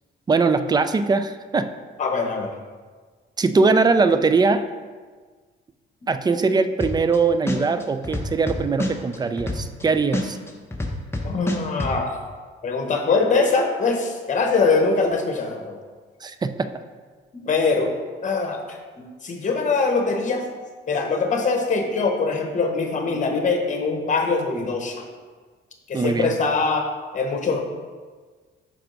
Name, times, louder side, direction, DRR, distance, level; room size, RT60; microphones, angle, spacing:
voice 1, 0.3-1.7 3.4-4.7 6.1-10.4 16.2-16.8 25.9-26.4, right 4 dB, 20° right, 10 dB, 0.4 m, -21 dB
voice 2, 2.0-2.5 11.2-12.1 12.6-15.8 17.3-17.9 18.2-20.5 20.9-25.0 25.9-26.9 27.1-27.6, left 4 dB, 40° left, 3 dB, 1.1 m, -23 dB
sound 1, 6.8-7.2 7.5-9.8 10.1-11.9, left 1 dB, 10° left, 0.8 m, -26 dB
6.0 x 4.4 x 3.9 m, 1.5 s
cardioid pair, 90°, 20 cm